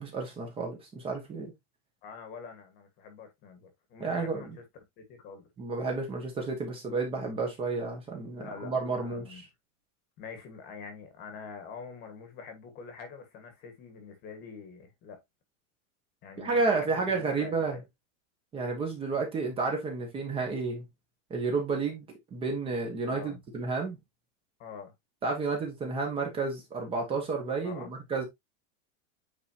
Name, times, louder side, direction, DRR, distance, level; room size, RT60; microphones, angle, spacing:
voice 1, 0.0-1.5 4.0-4.6 5.6-9.4 16.4-17.8 18.5-20.8 21.3-22.0 22.3-24.0 25.2-28.2, right 4 dB, 15° right, 1.4 m, -31 dB
voice 2, 2.0-4.6 5.0-5.5 8.3-9.4 10.2-15.2 16.2-17.8 23.0-23.4 24.6-24.9 27.6-28.2, left 5 dB, 25° left, 1.6 m, -45 dB
9.3 x 4.1 x 2.8 m
supercardioid pair, 180°, 36 cm